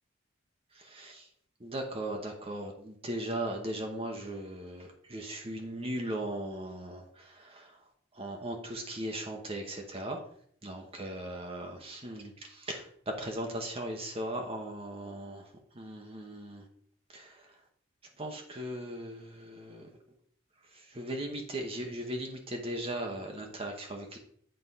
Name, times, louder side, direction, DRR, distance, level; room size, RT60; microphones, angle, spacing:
voice 1, 0.9-1.2 1.6-7.8 8.1-10.2 10.6-16.7 17.1-17.5 18.2-19.9 20.7-24.2, right 1 dB, 30° right, 2 dB, 1.0 m, -38 dB
7.9 x 3.8 x 5.5 m, 0.62 s
head